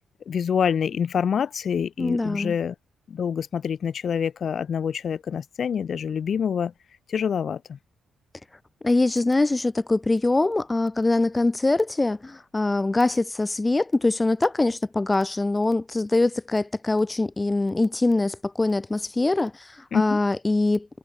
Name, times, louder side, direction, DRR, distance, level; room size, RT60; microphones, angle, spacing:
voice 1, 0.3-2.7 3.1-6.7 7.1-7.8 19.9-20.2, left 7 dB, 50° left, 1.0 m, -26 dB
voice 2, 2.0-2.5 8.8-20.9, left 2 dB, 15° left, 0.6 m, -23 dB
cardioid pair, 90°, 0 cm